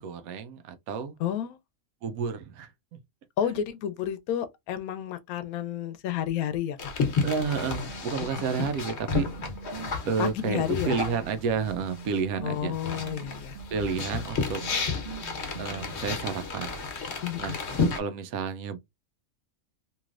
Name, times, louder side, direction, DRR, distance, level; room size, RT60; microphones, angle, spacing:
voice 1, 0.0-1.2 2.0-3.0 3.4-3.7 7.2-9.3 10.1-12.8 13.7-14.6 15.6-16.8 17.4-17.5 18.0-18.8, right 5 dB, 85° right, 1.0 m, -31 dB
voice 2, 1.2-1.6 3.4-6.9 10.2-11.0 12.4-13.6 17.2-17.6, left 10 dB, 85° left, 1.0 m, -31 dB
sound 1, 6.8-12.2 12.5-18.0, left 4 dB, 55° left, 1.1 m, -32 dB
sound 2, 7.9-15.9, right 7 dB, 65° right, 0.5 m, -45 dB
3.1 x 2.9 x 2.4 m
omnidirectional pair, 1.5 m